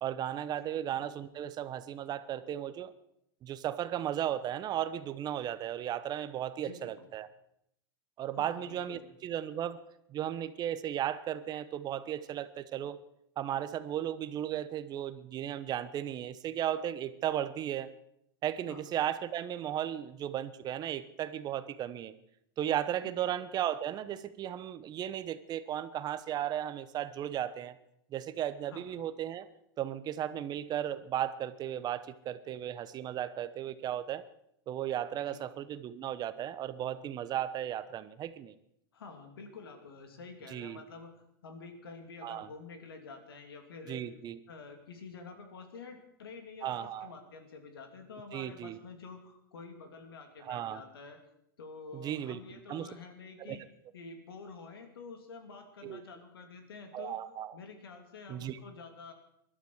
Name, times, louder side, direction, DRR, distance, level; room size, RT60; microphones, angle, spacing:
voice 1, 0.0-2.9 3.4-7.3 8.2-9.8 10.1-13.0 13.4-17.9 18.4-22.1 22.6-27.8 28.1-29.5 29.8-34.2 34.7-38.5 40.5-40.8 42.2-42.5 43.9-44.4 46.6-47.1 48.3-48.8 50.4-50.8 51.9-52.4 52.7-52.9 53.5-53.6 55.8-56.0 56.9-57.5 58.3-58.6, right 11 dB, 35° right, 13 dB, 0.9 m, -35 dB
voice 2, 6.6-7.1 8.4-9.1 18.7-18.8 23.0-23.3 28.7-28.9 35.3-35.5 38.9-41.1 41.4-44.1 44.5-51.2 51.6-53.6 53.9-57.2 57.5-59.1, left 4 dB, 85° left, 5 dB, 2.9 m, -48 dB
20.5 x 12.5 x 4.8 m, 0.75 s
hypercardioid pair, 110°, 12 cm